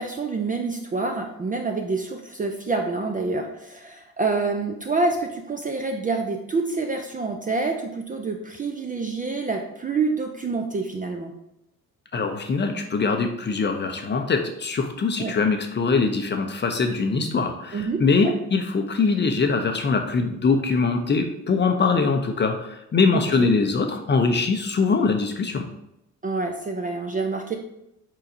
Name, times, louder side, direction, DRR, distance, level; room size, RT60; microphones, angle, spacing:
voice 1, 0.0-11.3 15.2-15.3 17.7-18.3 23.1-23.5 26.2-27.6, right 3 dB, 20° right, 3 dB, 0.4 m, -27 dB
voice 2, 12.1-25.7, left 4 dB, 25° left, 5 dB, 0.6 m, -22 dB
4.6 x 4.4 x 2.6 m, 0.82 s
hypercardioid pair, 55°, 45 cm